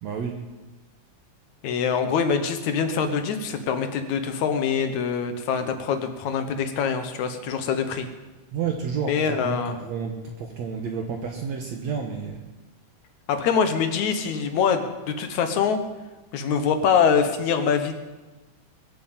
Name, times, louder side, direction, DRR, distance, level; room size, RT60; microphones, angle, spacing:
voice 1, 0.0-0.4 8.5-12.4, right 6 dB, 65° right, 2 dB, 2.3 m, -30 dB
voice 2, 1.6-8.1 9.1-9.8 13.3-15.8 16.3-17.9, left 6 dB, 70° left, 8 dB, 2.4 m, -24 dB
22.5 x 8.5 x 7.4 m, 1.2 s
omnidirectional pair, 3.6 m